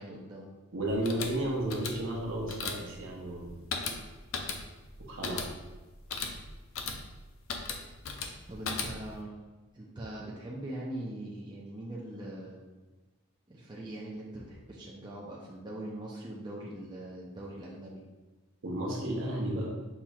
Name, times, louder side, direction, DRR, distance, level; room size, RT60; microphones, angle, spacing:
voice 1, 0.0-0.5 8.5-9.3 9.7-12.6 13.5-18.0, right 1 dB, 20° right, -5 dB, 0.5 m, -41 dB
voice 2, 0.7-3.6 5.1-5.4 18.6-19.7, right 1 dB, 65° right, -2 dB, 0.9 m, -33 dB
sound 1, 0.9-9.2, left 4 dB, 75° left, 0.5 m, -38 dB
5.7 x 3.1 x 2.3 m, 1.2 s
head